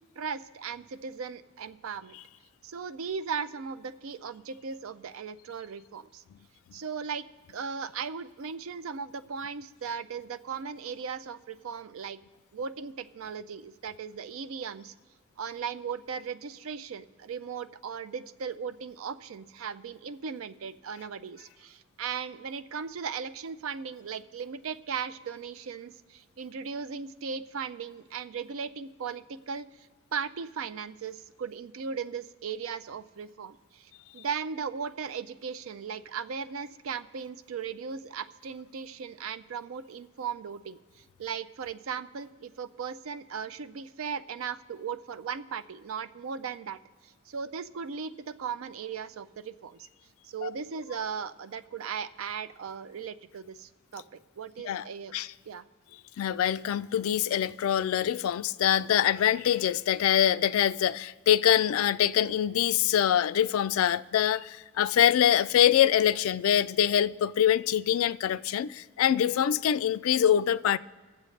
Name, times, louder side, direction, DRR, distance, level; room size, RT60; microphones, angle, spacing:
voice 1, 0.0-2.2 2.6-6.2 6.7-12.2 12.5-14.9 15.4-49.9 50.2-54.0 54.4-55.1 55.5-55.6, right 6 dB, 75° right, 0.4 m, -37 dB
voice 2, 56.2-70.8, left 10 dB, 80° left, 0.3 m, -24 dB
21.5 x 7.4 x 3.2 m
head